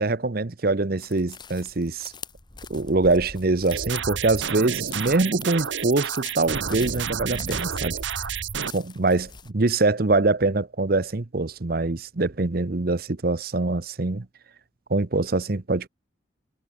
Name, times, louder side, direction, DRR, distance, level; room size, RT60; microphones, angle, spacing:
voice 1, 0.0-2.1 2.7-7.9 8.7-14.3 14.9-15.9, right 3 dB, 50° right, 0.8 m, -24 dB
sound 1, 1.0-9.5, left 5 dB, 25° left, 1.5 m, -45 dB
sound 2, 3.7-8.7, right 7 dB, 80° right, 1.2 m, -30 dB
head